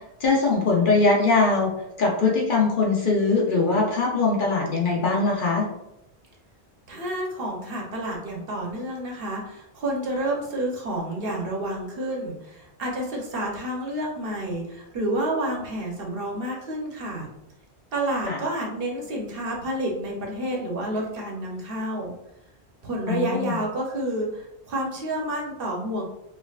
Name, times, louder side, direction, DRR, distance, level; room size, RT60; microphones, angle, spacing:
voice 1, 0.2-1.7 2.0-5.6 18.2-18.4 23.0-23.6, left 3 dB, 55° left, -2 dB, 0.9 m, -21 dB
voice 2, 6.9-17.3 17.9-22.1 22.8-26.0, right 1 dB, 60° right, -1 dB, 0.9 m, -29 dB
4.5 x 2.4 x 2.4 m, 0.85 s
omnidirectional pair, 1.1 m